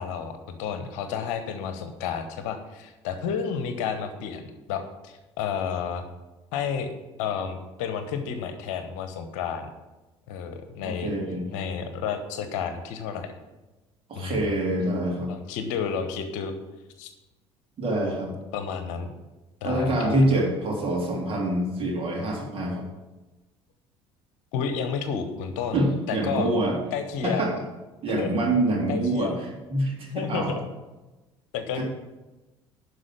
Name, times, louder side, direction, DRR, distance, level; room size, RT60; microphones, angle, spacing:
voice 1, 0.0-4.4 4.7-6.1 6.5-6.9 7.2-9.7 10.3-11.1 11.5-13.3 14.1-14.5 15.3-16.5 17.0-17.1 18.5-19.1 19.6-20.2 24.5-25.8 26.1-26.5 26.9-27.5 28.2-28.3 28.9-29.3 30.1-30.7 31.5-31.8, left 7 dB, 60° left, 8 dB, 1.1 m, -31 dB
voice 2, 10.8-11.5 14.1-15.3 17.8-18.3 19.6-22.8 25.7-26.8 27.2-27.5 28.0-30.6 31.7-31.8, right 1 dB, 40° right, -2 dB, 3.6 m, -25 dB
11.5 x 4.9 x 7.7 m, 1.1 s
figure-of-eight pair, 60°, 15 cm